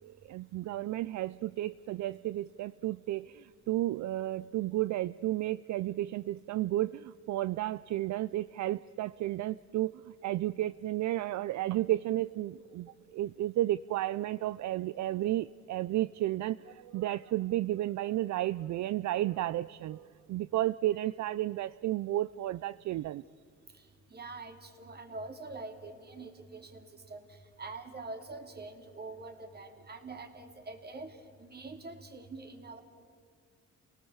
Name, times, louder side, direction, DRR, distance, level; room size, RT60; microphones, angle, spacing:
voice 1, 0.0-23.2, right 14 dB, 70° right, 15 dB, 0.5 m, -32 dB
voice 2, 23.7-32.8, right 3 dB, 35° right, 5 dB, 2.9 m, -45 dB
29.5 x 18.5 x 7.2 m, 2.2 s
cardioid pair, 90°, 30 cm